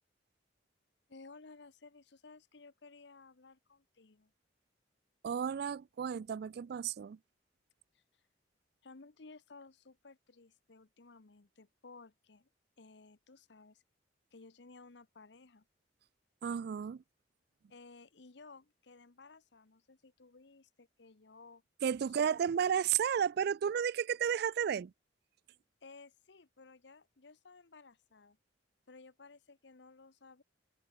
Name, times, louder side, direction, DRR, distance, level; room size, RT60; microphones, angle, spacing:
voice 1, 1.1-4.3 7.9-8.2 8.8-12.5 12.8-13.8 14.3-15.6 17.7-21.6 22.1-22.3 25.8-28.4 28.9-30.4, left 3 dB, 65° left, 1.0 m, -57 dB
voice 2, 5.2-7.2 16.4-17.0 21.8-24.9, right 8 dB, 60° right, 0.3 m, -32 dB
head